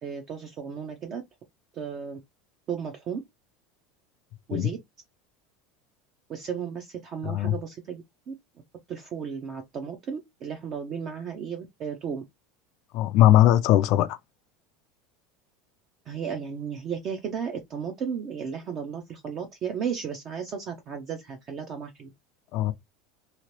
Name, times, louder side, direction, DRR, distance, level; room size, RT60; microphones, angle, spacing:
voice 1, 0.0-1.2 1.7-2.2 2.7-3.2 4.5-4.8 6.3-8.3 8.9-12.2 16.1-22.1, right 7 dB, 30° right, 0.5 m, -34 dB
voice 2, 7.2-7.5 12.9-14.2 22.5-22.7, left 13 dB, 45° left, 0.3 m, -20 dB
2.9 x 2.9 x 3.0 m
supercardioid pair, 170°, 0 cm